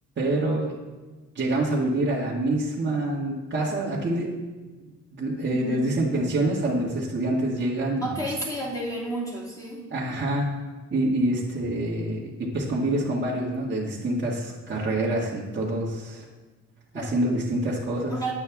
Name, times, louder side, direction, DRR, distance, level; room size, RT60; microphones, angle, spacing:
voice 1, 0.2-0.7 1.3-4.3 5.1-8.1 9.9-10.6 10.9-16.2 16.9-18.1, right 1 dB, 40° right, -7 dB, 1.7 m, -26 dB
voice 2, 5.5-5.8 8.0-9.9 16.9-17.1 18.1-18.3, right 1 dB, 10° left, -5 dB, 2.8 m, -31 dB
8.8 x 7.2 x 3.5 m, 1.3 s
cardioid pair, 90°, 30 cm